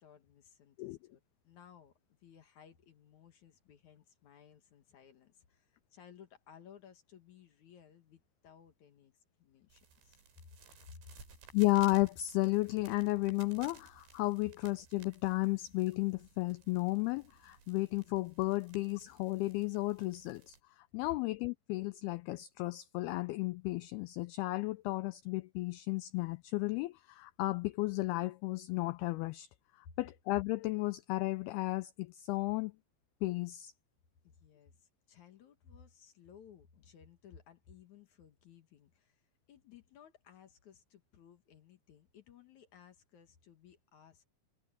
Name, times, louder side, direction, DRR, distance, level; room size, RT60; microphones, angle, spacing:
voice 1, 0.0-10.2 10.9-11.1 29.8-30.0 34.2-44.3, left 8 dB, 60° left, 2.2 m, -59 dB
sound 1, 9.7-20.6, right 6 dB, 80° right, 7.7 m, -59 dB
voice 2, 11.5-29.5 30.0-32.8 33.2-33.7, left 20 dB, 85° left, 2.2 m, -33 dB
omnidirectional pair, 5.1 m